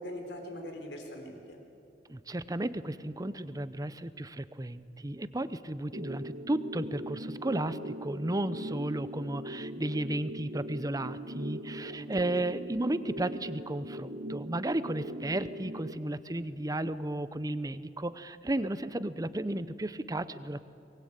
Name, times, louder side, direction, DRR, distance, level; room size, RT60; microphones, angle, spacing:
voice 1, 0.0-1.6 11.5-12.1, equal, 75° left, 4 dB, 4.2 m, -42 dB
voice 2, 2.1-20.6, right 1 dB, 20° right, 14 dB, 0.7 m, -34 dB
sound 1, 5.9-15.9, right 1 dB, 60° right, 1.5 m, -41 dB
24.0 x 20.0 x 9.0 m, 2.7 s
head